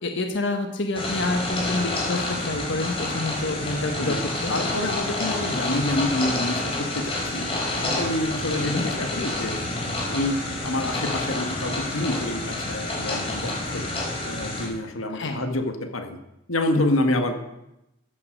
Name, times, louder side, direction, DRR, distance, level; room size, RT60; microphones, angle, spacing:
voice 1, 0.0-4.5 8.6-8.8 15.1-15.4, left 2 dB, 65° left, 5 dB, 1.4 m, -28 dB
sound 1, 0.9-14.7, left 2 dB, 30° left, 4.4 m, -28 dB
voice 2, 4.5-7.5 7.8-9.6 10.1-13.8 14.2-16.2 16.5-17.3, left 1 dB, 90° left, 6 dB, 1.7 m, -27 dB
14.5 x 9.8 x 6.6 m, 0.90 s
head